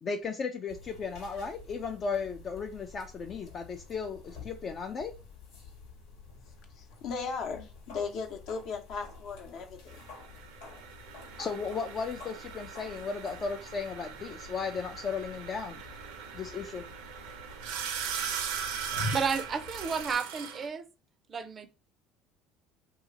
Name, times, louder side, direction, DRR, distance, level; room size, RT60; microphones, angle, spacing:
voice 1, 0.0-5.1 11.4-15.8 16.3-16.8, left 5 dB, 40° left, 0.4 m, -35 dB
sound 1, 0.7-20.2, left 3 dB, 85° left, 1.1 m, -47 dB
voice 2, 6.7-10.0, left 5 dB, 60° left, 0.8 m, -37 dB
sound 2, 9.9-20.7, right 8 dB, 85° right, 0.6 m, -40 dB
voice 3, 19.1-20.8 21.3-21.7, right 5 dB, 35° right, 0.4 m, -32 dB
2.9 x 2.4 x 3.8 m
supercardioid pair, 100°, 0 cm